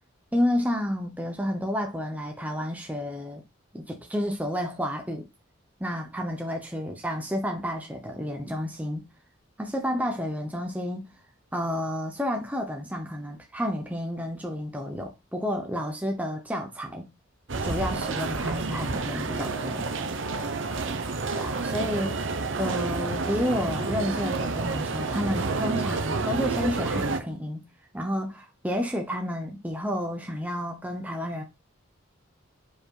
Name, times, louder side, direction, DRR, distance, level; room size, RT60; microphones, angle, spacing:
voice 1, 0.3-3.4 3.7-5.3 5.8-9.0 9.6-11.1 11.5-17.1 17.6-19.9 21.4-22.2 22.6-27.6 27.9-31.4, equal, 5° right, 0.9 m, -30 dB
sound 1, 17.5-27.2, right 3 dB, 65° right, 0.9 m, -29 dB
5.1 x 5.0 x 4.7 m
head